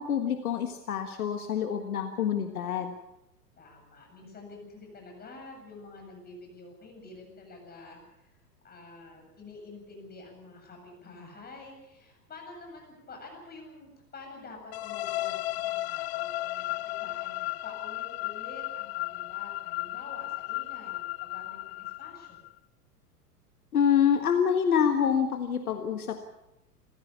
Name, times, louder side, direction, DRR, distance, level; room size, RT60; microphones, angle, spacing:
voice 1, 0.0-2.9 23.7-26.2, left 8 dB, 65° left, 7 dB, 1.6 m, -26 dB
voice 2, 3.6-22.4, left 3 dB, 20° left, 2 dB, 7.9 m, -48 dB
sound 1, 14.7-22.5, left 18 dB, 40° left, 0.7 m, -35 dB
28.0 x 15.0 x 7.1 m, 0.93 s
figure-of-eight pair, 95°, 48 cm